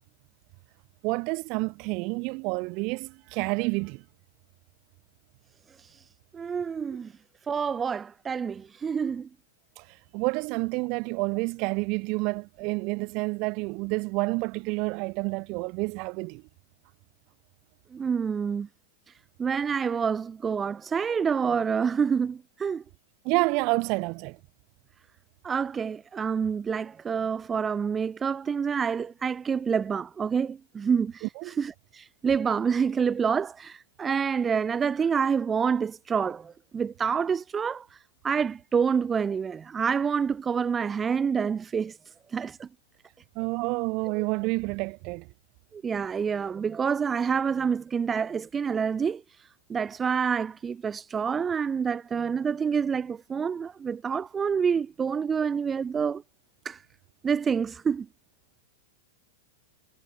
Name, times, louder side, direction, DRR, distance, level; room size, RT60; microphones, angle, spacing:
voice 1, 1.0-4.0 9.8-9.9 10.1-16.4 23.2-24.4 31.2-31.5 43.4-45.3, right 29 dB, 45° right, 2.0 m, -29 dB
voice 2, 6.3-7.1 7.5-9.3 17.9-18.7 19.4-22.8 25.4-31.2 31.6-37.9 38.2-42.0 42.3-42.7 44.2-44.3 45.7-49.2 49.7-56.2 56.6-56.8 57.2-58.1, right 6 dB, 20° right, 1.0 m, -27 dB
hypercardioid pair, 115°, 0 cm